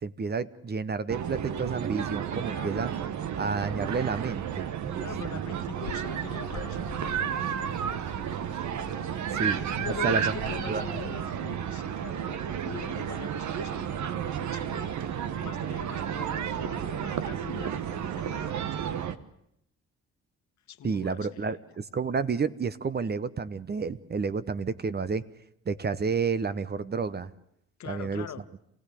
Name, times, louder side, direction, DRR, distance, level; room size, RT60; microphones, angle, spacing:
voice 1, 0.0-2.9 3.4-5.1 9.3-9.7 10.0-10.3 10.7-10.8 20.8-25.2 25.7-27.3 27.9-28.3, right 5 dB, 35° right, 15 dB, 0.9 m, -30 dB
sound 1, 1.1-19.2, right 9 dB, 70° right, 1.3 m, -32 dB
voice 2, 2.5-2.9 5.0-8.1 9.5-19.1 20.7-21.6 27.8-28.5, left 9 dB, 65° left, 9 dB, 1.5 m, -43 dB
Bird, 5.7-11.6, left 10 dB, 90° left, 2.1 m, -47 dB
27.5 x 17.0 x 8.4 m, 0.77 s
cardioid pair, 90°, 30 cm